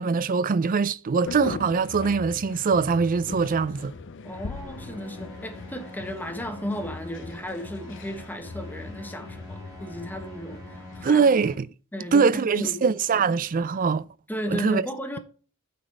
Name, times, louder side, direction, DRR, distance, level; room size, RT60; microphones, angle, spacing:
voice 1, 0.0-3.9 11.0-11.7 12.1-14.0 14.5-14.9, right 5 dB, 40° right, 0.4 m, -22 dB
sound 1, 1.2-11.1, left 4 dB, 60° left, 0.6 m, -40 dB
voice 2, 4.2-11.2 11.9-13.3 14.3-15.2, left 1 dB, 10° left, 1.2 m, -35 dB
sound 2, 4.3-11.5, equal, 15° right, 2.1 m, -45 dB
9.2 x 4.0 x 6.5 m
head